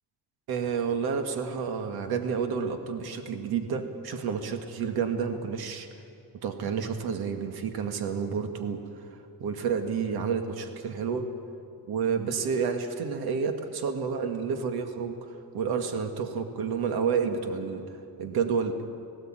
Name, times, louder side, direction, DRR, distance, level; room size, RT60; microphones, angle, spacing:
voice 1, 0.5-5.9 6.4-8.8 9.4-11.3 11.9-17.8 18.2-18.8, right 6 dB, 65° right, 6 dB, 1.9 m, -30 dB
18.0 x 17.5 x 9.0 m, 2.5 s
cardioid pair, 170°, 40 cm